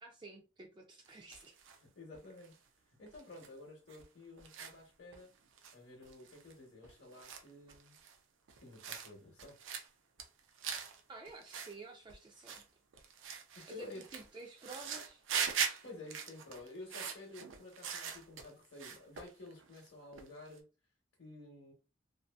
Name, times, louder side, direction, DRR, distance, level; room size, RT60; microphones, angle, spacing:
voice 1, 0.0-1.5 11.1-12.6 13.7-15.2, right 3 dB, 25° right, 0.3 m, -51 dB
sound 1, 1.1-1.8 2.1-2.5 3.1-3.5 3.9-4.0 4.4-4.7 5.1-5.2 5.6-5.8 6.0-6.5 6.8-8.2 8.5-9.1 9.4-9.9 10.2-11.0 11.3-11.7 12.1-12.6 12.9-18.5 18.8-19.9 20.1-20.6, right 7 dB, 90° right, 0.5 m, -41 dB
voice 2, 1.8-2.6 3.0-5.3 5.7-8.0 8.6-9.6 13.6-14.1 15.8-20.6 21.2-21.7, left 2 dB, 60° left, 0.8 m, -52 dB
2.6 x 2.4 x 2.3 m
head